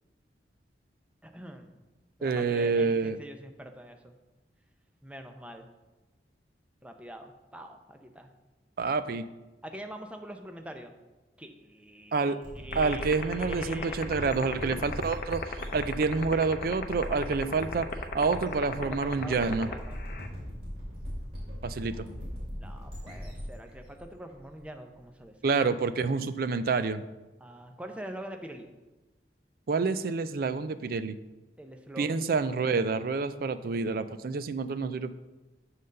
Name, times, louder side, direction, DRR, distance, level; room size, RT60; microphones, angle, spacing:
voice 1, 1.2-1.7 2.2-4.2 5.0-5.7 6.8-8.3 9.6-10.9 11.4-14.8 18.2-20.0 22.5-25.6 26.1-26.2 27.4-28.7 31.6-32.2, right 1 dB, 5° right, 5 dB, 0.6 m, -44 dB
voice 2, 2.2-3.2 8.8-9.3 12.1-12.4 12.8-17.9 18.1-19.7 21.6-22.1 25.4-27.0 29.7-31.2 32.0-35.1, right 4 dB, 55° right, 13 dB, 0.4 m, -28 dB
sound 1, 12.4-25.0, equal, 35° right, 2.8 m, -40 dB
sound 2, 12.7-20.3, left 5 dB, 50° left, 0.6 m, -33 dB
7.7 x 4.0 x 6.4 m, 1.1 s
head